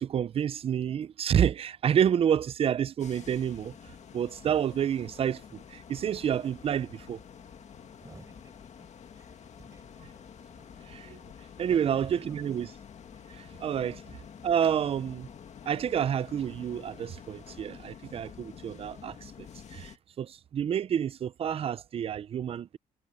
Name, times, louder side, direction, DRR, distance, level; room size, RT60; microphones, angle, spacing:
voice 1, 0.0-3.7 4.1-7.2 10.9-11.2 11.6-12.7 13.3-14.0 14.4-15.3 15.7-22.8, right 9 dB, 35° right, 0.4 m, -29 dB
sound 1, 3.0-20.0, left 7 dB, 45° left, 2.0 m, -49 dB
voice 2, 8.0-8.9 9.1-10.2 11.7-12.4, right 3 dB, 20° right, 5.0 m, -55 dB
cardioid pair, 135°, 16 cm